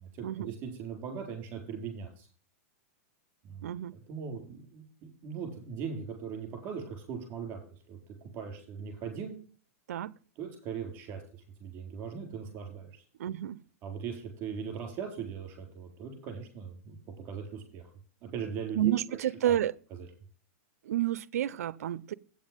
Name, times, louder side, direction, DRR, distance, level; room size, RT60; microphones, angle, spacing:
voice 1, 0.0-2.3 3.4-7.6 7.9-9.3 10.4-13.0 13.8-17.0 17.2-17.8 18.2-19.6 19.9-20.1, right 6 dB, 25° right, 4.1 m, -40 dB
voice 2, 3.6-4.0 9.9-10.1 13.2-13.6 18.8-19.7 20.9-22.1, right 12 dB, 80° right, 0.5 m, -30 dB
8.6 x 7.4 x 5.1 m
supercardioid pair, 160°, 8 cm